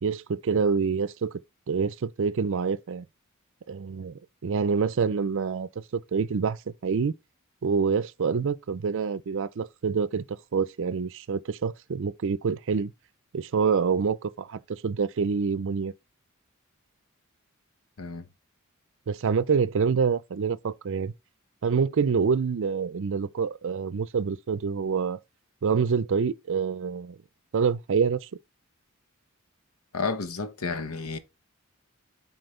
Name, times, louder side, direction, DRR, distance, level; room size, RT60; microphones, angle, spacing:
voice 1, 0.0-1.3 1.7-3.0 3.7-7.1 7.6-10.2 10.5-12.9 13.3-15.9 19.1-21.1 21.6-25.2 25.6-27.2 27.5-28.3, right 5 dB, 60° right, 0.5 m, -26 dB
voice 2, 29.9-31.2, left 4 dB, 80° left, 1.0 m, -31 dB
7.9 x 4.4 x 3.2 m
head